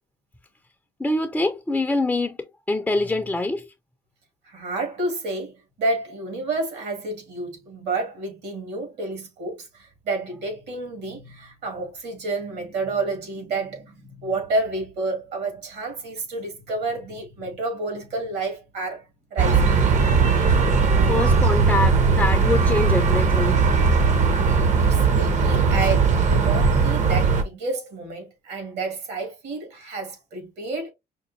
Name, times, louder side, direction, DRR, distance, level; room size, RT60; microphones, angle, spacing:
voice 1, 1.0-3.7 21.0-23.6 24.9-25.1, left 2 dB, 10° left, 0.4 m, -25 dB
voice 2, 4.4-19.8 24.4-24.5 24.8-30.9, right 3 dB, 75° right, 1.9 m, -30 dB
sound 1, 19.4-27.4, right 4 dB, 45° right, 0.7 m, -19 dB
5.1 x 2.1 x 2.6 m
cardioid pair, 110°, 17 cm